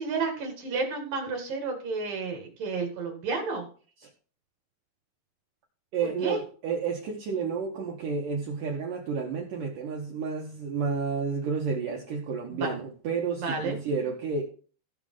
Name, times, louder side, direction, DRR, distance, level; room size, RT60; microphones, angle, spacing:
voice 1, 0.0-3.7 6.2-6.4 12.5-12.8 13.4-13.8, right 4 dB, 55° right, 2.9 m, -31 dB
voice 2, 5.9-14.4, right 5 dB, 80° right, 1.9 m, -31 dB
15.5 x 6.6 x 3.8 m
omnidirectional pair, 5.9 m